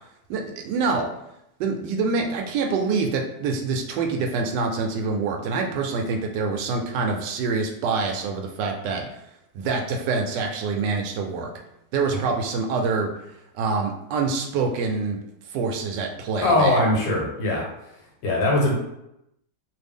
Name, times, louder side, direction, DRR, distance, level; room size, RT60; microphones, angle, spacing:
voice 1, 0.3-1.1 1.6-9.0 9.5-11.5 11.9-13.1 13.6-15.2 15.5-16.8, right 4 dB, 75° right, 2 dB, 1.2 m, -25 dB
voice 2, 16.4-17.7 18.2-18.7, left 1 dB, 80° left, -2 dB, 1.7 m, -20 dB
3.3 x 2.4 x 3.4 m, 0.83 s
omnidirectional pair, 2.0 m